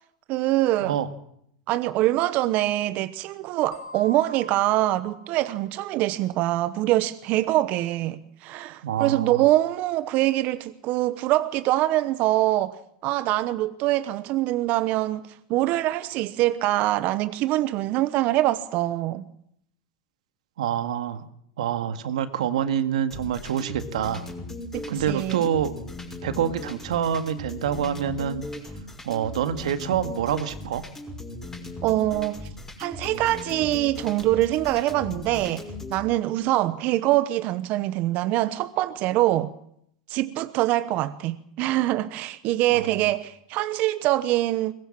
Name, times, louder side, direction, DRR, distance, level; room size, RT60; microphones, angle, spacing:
voice 1, 0.3-1.0 1.7-19.3 24.7-25.5 31.8-32.5 32.8-35.6 35.9-39.5 40.1-44.7, right 15 dB, 50° right, 1.0 m, -24 dB
sound 1, 3.7-6.2, left 1 dB, 90° left, 4.6 m, -45 dB
voice 2, 8.8-9.4 20.6-21.2 21.6-24.2 24.9-25.7 26.2-28.4 29.0-30.8 42.7-42.9, right 9 dB, 85° right, 1.9 m, -26 dB
sound 2, 23.1-36.0, left 2 dB, 10° left, 6.1 m, -38 dB
22.0 x 20.0 x 7.5 m
supercardioid pair, 120°, 3 cm